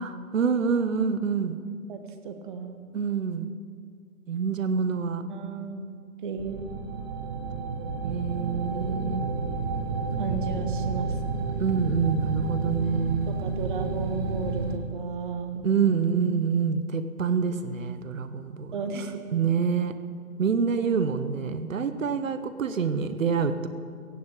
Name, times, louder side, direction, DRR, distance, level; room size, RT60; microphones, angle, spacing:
voice 1, 0.0-1.6 2.9-3.5 4.3-5.3 8.0-9.2 11.6-13.3 15.6-18.8 19.3-20.0 20.4-23.7, right 6 dB, 60° right, 11 dB, 1.2 m, -26 dB
voice 2, 1.9-2.8 5.3-5.8 6.2-6.8 10.2-11.5 13.3-15.9 18.7-19.6, right 5 dB, 35° right, 7 dB, 1.4 m, -35 dB
sound 1, 6.4-14.8, right 4 dB, 15° right, 0.6 m, -30 dB
15.5 x 7.7 x 8.7 m, 2.1 s
figure-of-eight pair, 145°, 44 cm